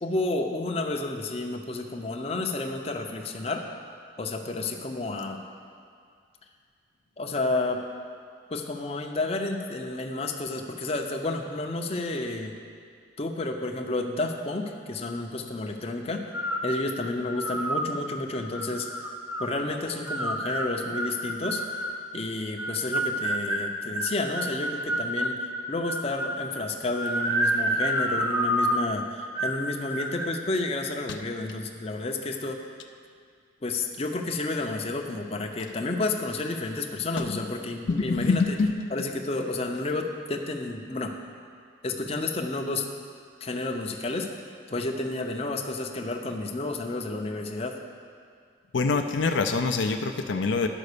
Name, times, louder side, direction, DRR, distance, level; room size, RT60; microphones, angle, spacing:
voice 1, 0.0-3.7 4.2-5.4 7.2-7.8 8.5-12.5 13.2-16.2 16.6-18.9 19.4-21.6 22.1-32.6 33.6-38.4 38.9-41.1 41.8-42.9 43.4-44.3 44.7-47.8, left 2 dB, 30° left, 2 dB, 0.6 m, -31 dB
sound 1, 16.3-16.7 17.3-17.9 18.5-19.5 20.1-22.0 22.6-25.4 25.9-26.4 26.9-28.9 29.3-29.6 29.9-30.3, right 1 dB, 10° right, 0.7 m, -28 dB
voice 2, 37.9-38.9 48.7-50.7, left 4 dB, 75° left, 6 dB, 0.5 m, -25 dB
11.0 x 5.2 x 6.7 m, 2.2 s
head